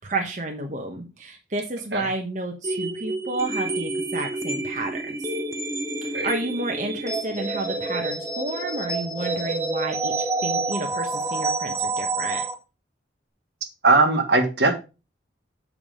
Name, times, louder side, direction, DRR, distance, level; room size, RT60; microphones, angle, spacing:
voice 1, 0.0-5.2 6.0-10.1 10.4-12.4, right 2 dB, 45° right, 2 dB, 1.1 m, -31 dB
sound 1, 2.6-12.5, right 2 dB, 15° right, 0.8 m, -28 dB
voice 2, 13.8-14.7, right 3 dB, 70° right, 5 dB, 1.6 m, -19 dB
7.4 x 4.8 x 5.0 m, 0.30 s
head